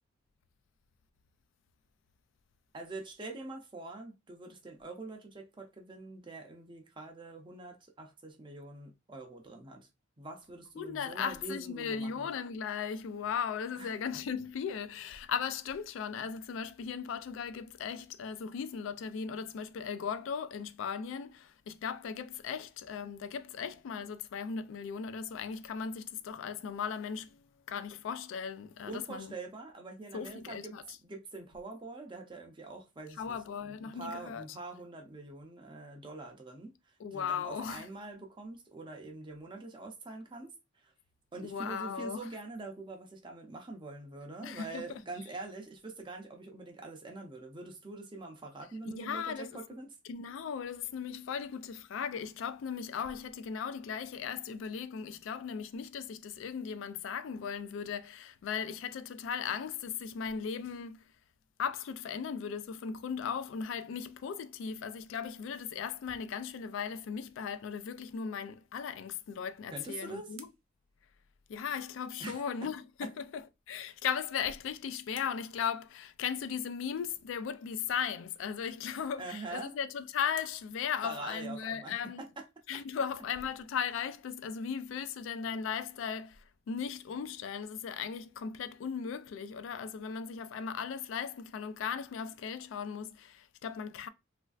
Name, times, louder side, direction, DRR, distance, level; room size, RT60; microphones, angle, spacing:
voice 1, 2.7-9.9 10.2-12.3 13.8-13.9 28.9-30.7 31.0-40.9 41.3-49.9 69.7-70.4 72.2-72.4 73.0-73.1 79.2-79.8 81.0-82.4, right 2 dB, 25° right, 0.5 m, -44 dB
voice 2, 10.8-29.3 30.1-30.8 33.2-34.4 37.0-37.9 41.4-42.3 44.4-45.0 48.9-49.5 50.1-61.0 61.6-70.5 71.5-82.2 82.7-94.1, left 7 dB, 70° left, 0.3 m, -37 dB
sound 1, 69.4-71.9 74.1-76.5 78.7-81.9, right 9 dB, 90° right, 0.5 m, -60 dB
3.1 x 2.5 x 2.3 m
head